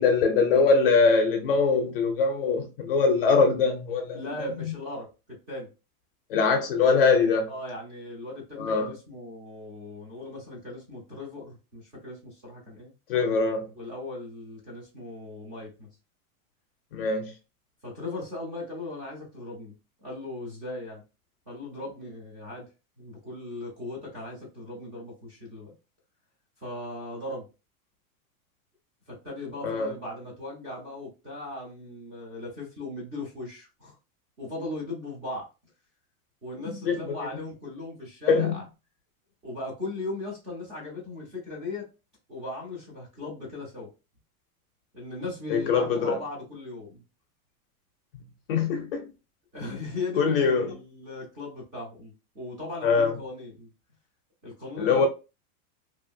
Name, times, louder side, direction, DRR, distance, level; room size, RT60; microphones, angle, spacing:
voice 1, 0.0-4.3 4.6-4.7 6.3-7.5 8.6-8.9 13.1-13.7 16.9-17.3 29.6-29.9 36.9-37.0 37.3-37.4 38.3-38.6 45.5-46.2 48.5-49.1 50.2-50.8 52.8-53.1 54.8-55.1, left 4 dB, 40° left, 0.5 m, -22 dB
voice 2, 4.1-5.1 5.5-5.7 7.5-12.9 13.7-15.9 17.8-19.7 20.0-21.0 21.5-22.7 23.0-25.7 26.6-27.4 29.1-33.9 34.4-35.5 36.4-38.6 39.4-41.9 42.3-43.9 44.9-47.0 49.5-53.7 54.4-55.1, left 2 dB, 15° right, 0.5 m, -38 dB
2.8 x 2.4 x 2.5 m
supercardioid pair, 180°, 44 cm